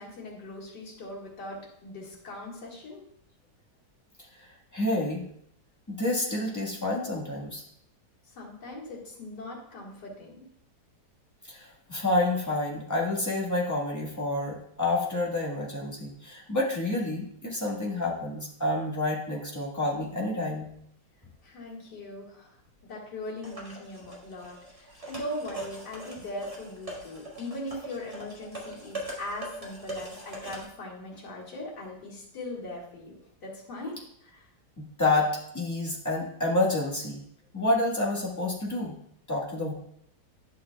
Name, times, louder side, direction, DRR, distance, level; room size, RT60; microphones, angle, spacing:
voice 1, 0.0-3.0 8.3-10.4 21.4-22.6 22.8-34.5, left 1 dB, 70° left, -4 dB, 2.5 m, -40 dB
voice 2, 4.4-5.2 5.9-7.6 11.5-20.7 34.8-37.2 37.5-38.9 39.3-39.7, left 2 dB, 10° left, -3 dB, 1.3 m, -29 dB
sound 1, 23.4-30.6, right 1 dB, 20° right, 1.6 m, -41 dB
11.0 x 6.5 x 2.3 m, 0.70 s
omnidirectional pair, 1.9 m